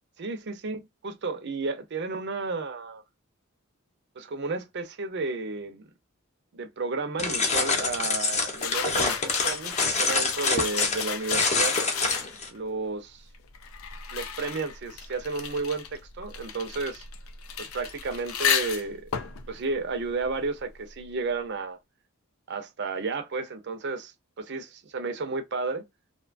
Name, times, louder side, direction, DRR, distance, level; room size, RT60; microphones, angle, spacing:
voice 1, 0.2-3.0 4.2-5.9 6.5-11.8 12.5-13.2 14.1-17.0 17.6-19.1 19.5-21.8 22.5-25.8, right 3 dB, 55° right, 0.6 m, -32 dB
sound 1, 7.2-12.5, left 4 dB, 35° left, 0.7 m, -26 dB
sound 2, 8.5-12.6 13.3-20.7, left 8 dB, 75° left, 0.5 m, -34 dB
2.7 x 2.2 x 2.4 m
head